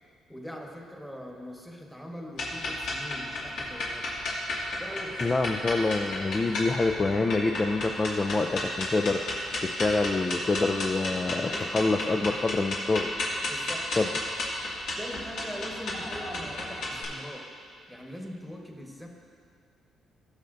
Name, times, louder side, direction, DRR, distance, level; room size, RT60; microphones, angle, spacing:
voice 1, 0.3-4.1 4.8-5.4 11.5-12.1 13.4-13.9 15.0-17.5 17.9-19.1, equal, 5° left, 0 dB, 1.3 m, -41 dB
sound 1, 2.3-17.0, left 2 dB, 80° left, 2.1 m, -33 dB
voice 2, 5.2-13.1 14.0-14.1, left 3 dB, 30° left, 3 dB, 0.4 m, -26 dB
17.5 x 6.7 x 2.6 m, 2.3 s
cardioid pair, 90°, 0 cm